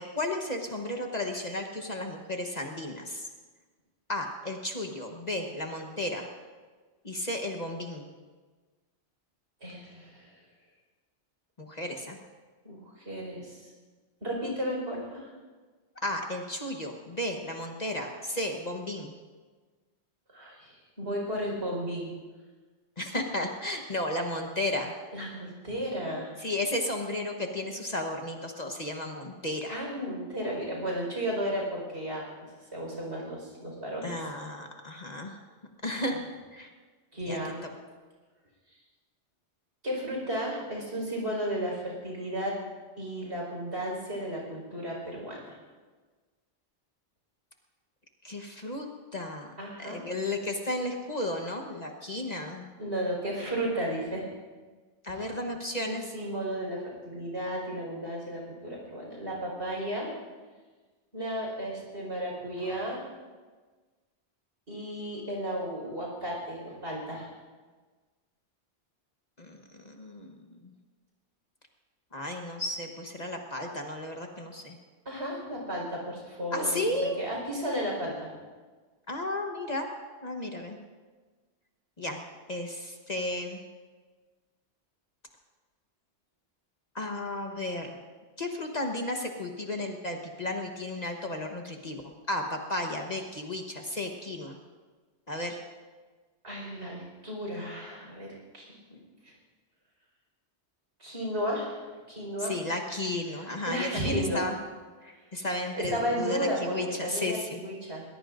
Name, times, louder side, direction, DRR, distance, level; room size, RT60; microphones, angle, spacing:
voice 1, 0.0-3.3 4.1-6.3 7.0-8.1 11.6-12.2 16.0-19.1 23.0-24.9 26.4-29.8 34.0-35.4 35.8-36.2 36.5-36.7 37.3-37.4 48.2-48.9 49.1-49.5 49.8-52.7 55.0-56.1 69.4-70.7 72.1-74.8 76.5-77.2 79.1-79.9 80.2-80.8 82.0-82.2 82.5-83.6 86.9-88.0 88.4-94.6 95.3-95.6 102.4-104.5 105.0-107.6, left 1 dB, 40° left, 2 dB, 1.2 m, -33 dB
voice 2, 9.6-10.4 12.6-13.7 14.2-15.3 20.3-22.1 25.1-26.4 29.7-32.5 32.7-34.2 37.1-37.6 39.8-42.5 43.0-45.6 49.6-50.0 52.8-54.3 55.2-55.3 55.9-60.1 61.1-63.0 64.7-67.3 75.0-78.3 96.4-99.0 99.2-99.3 101.0-102.6 103.3-104.4 105.7-108.0, equal, 65° right, -2 dB, 5.1 m, -34 dB
22.0 x 19.5 x 2.6 m, 1.4 s
omnidirectional pair, 1.2 m